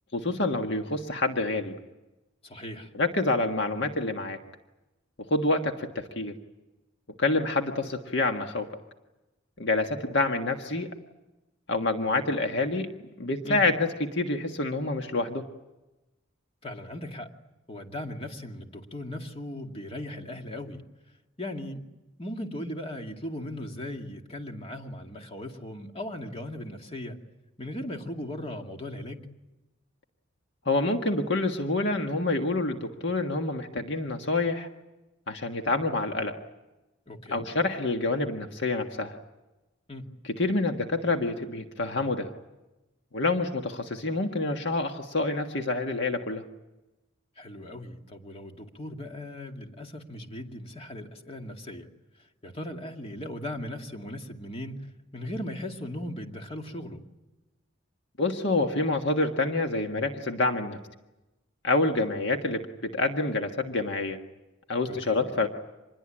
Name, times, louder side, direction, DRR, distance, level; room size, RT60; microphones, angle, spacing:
voice 1, 0.1-1.7 2.9-4.4 5.3-6.3 7.2-8.7 9.6-10.9 11.7-12.9 13.2-15.4 30.6-34.7 35.3-36.4 37.3-39.1 40.4-42.3 43.1-46.4 58.2-60.8 61.6-64.2 64.7-65.5, left 2 dB, 60° left, 4 dB, 1.6 m, -27 dB
voice 2, 2.4-2.9 13.4-13.6 16.6-17.3 17.7-20.8 21.4-21.8 22.2-27.2 27.6-29.3 37.1-37.5 39.9-40.1 47.4-51.9 52.2-57.0 64.8-65.3, left 1 dB, 30° left, 3 dB, 2.3 m, -38 dB
26.5 x 21.5 x 8.9 m, 1.0 s
head